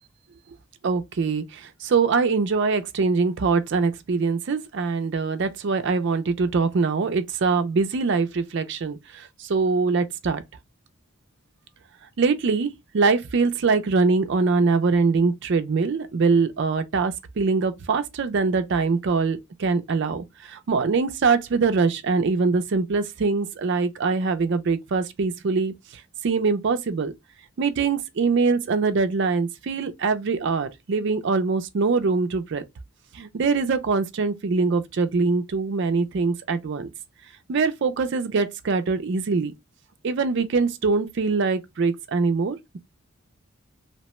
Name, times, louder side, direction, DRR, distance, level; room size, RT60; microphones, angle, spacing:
voice 1, 0.8-10.4 12.2-25.7 26.2-27.1 27.6-32.6 33.1-36.9 37.5-39.5 40.0-42.8, right 4 dB, 55° right, 0.4 m, -23 dB
2.8 x 2.1 x 2.9 m
head